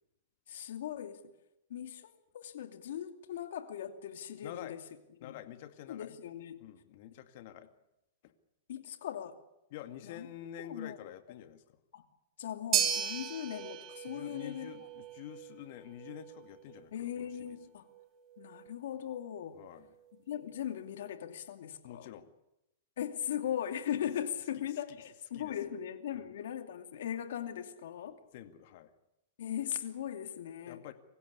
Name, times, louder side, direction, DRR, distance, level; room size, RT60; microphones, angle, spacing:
voice 1, 0.5-1.2 1.7-4.8 5.2-5.4 5.9-6.6 8.7-9.3 10.0-10.3 10.6-11.0 11.9-12.0 12.4-14.7 16.9-17.8 18.4-19.6 20.3-22.1 23.0-28.2 29.4-30.8, left 10 dB, 75° left, 8 dB, 2.6 m, -39 dB
voice 2, 4.4-4.8 5.2-6.1 6.6-7.7 9.7-11.6 14.1-17.6 19.5-19.9 21.8-22.3 24.9-25.0 25.3-25.8 26.1-26.3 28.3-28.9 30.7-30.9, left 11 dB, 55° left, 10 dB, 2.1 m, -48 dB
sound 1, 12.7-21.1, right 9 dB, 30° right, 2.5 m, -38 dB
24.5 x 15.5 x 9.8 m, 0.89 s
hypercardioid pair, 145°, 0 cm